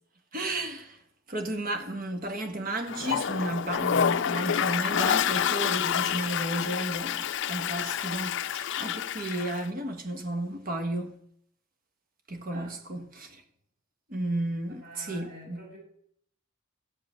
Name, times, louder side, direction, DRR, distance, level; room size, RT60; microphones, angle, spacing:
voice 1, 0.3-1.0 1.3-11.2 12.3-13.4 14.1-15.6, right 1 dB, 40° right, 1.4 m, -33 dB
Toilet flush, 2.9-9.6, left 8 dB, 55° left, 0.4 m, -28 dB
voice 2, 14.7-15.8, right 1 dB, 60° right, 6.1 m, -47 dB
13.5 x 5.7 x 8.7 m
head